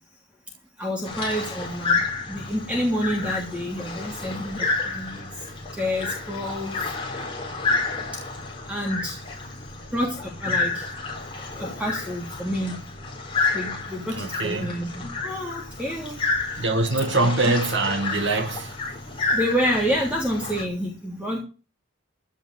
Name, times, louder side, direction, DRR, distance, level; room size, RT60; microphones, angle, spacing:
voice 1, 0.8-5.5 5.7-6.9 8.1-8.2 8.7-9.2 9.9-10.9 11.5-12.8 13.5-16.2 17.4-17.5 19.3-21.4, equal, 5° right, 3.1 m, -28 dB
sound 1, 1.0-20.6, left 3 dB, 25° left, 3.9 m, -30 dB
voice 2, 14.1-14.7 16.6-18.7, right 3 dB, 60° right, 1.8 m, -24 dB
15.0 x 5.4 x 9.3 m
head